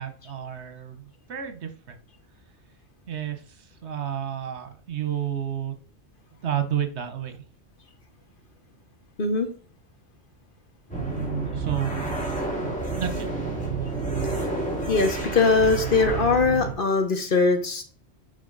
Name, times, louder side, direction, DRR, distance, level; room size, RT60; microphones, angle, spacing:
voice 1, 0.0-2.0 3.1-5.7 6.3-7.4 11.5-12.1 12.9-13.3, right 10 dB, 75° right, 8 dB, 1.3 m, -31 dB
sound 1, 10.9-16.7, right 3 dB, 5° left, 2.5 m, -29 dB
voice 2, 14.9-17.8, left 4 dB, 50° left, 6 dB, 1.3 m, -21 dB
9.2 x 5.3 x 3.9 m, 0.42 s
omnidirectional pair, 1.2 m